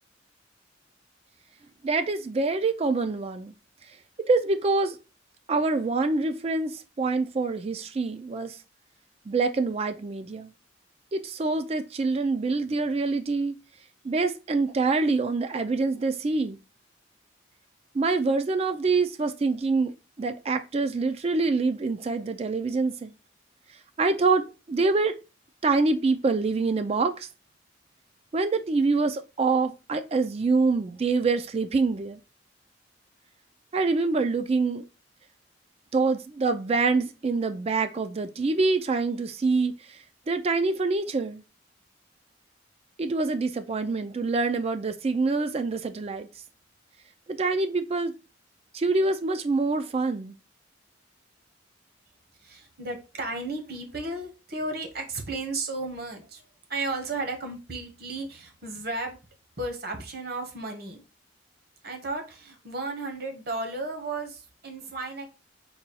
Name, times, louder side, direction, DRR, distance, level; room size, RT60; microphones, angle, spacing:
voice 1, 1.8-3.5 4.2-5.0 5.5-8.6 9.3-10.5 11.1-13.6 14.0-16.6 17.9-23.1 24.0-25.1 25.6-27.3 28.3-32.2 33.7-34.8 35.9-40.0 40.3-41.4 43.0-46.3 47.3-48.1 48.7-50.4, right 3 dB, 30° right, 0.3 m, -25 dB
voice 2, 52.4-56.4 56.7-59.2 59.6-61.0 61.8-65.3, right 2 dB, 55° right, 1.0 m, -34 dB
4.0 x 2.3 x 4.1 m
head